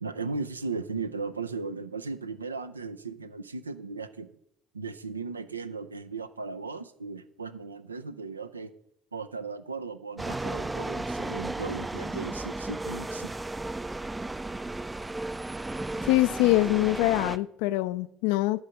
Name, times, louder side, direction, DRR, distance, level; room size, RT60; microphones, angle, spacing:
voice 1, 0.0-4.3 4.7-8.7 9.1-13.3, right 4 dB, 85° right, 0.4 m, -36 dB
sound 1, 10.2-17.4, right 2 dB, 15° right, 0.3 m, -34 dB
voice 2, 16.0-18.6, left 18 dB, 65° left, 0.3 m, -24 dB
11.0 x 4.7 x 6.4 m
figure-of-eight pair, 55°, 0 cm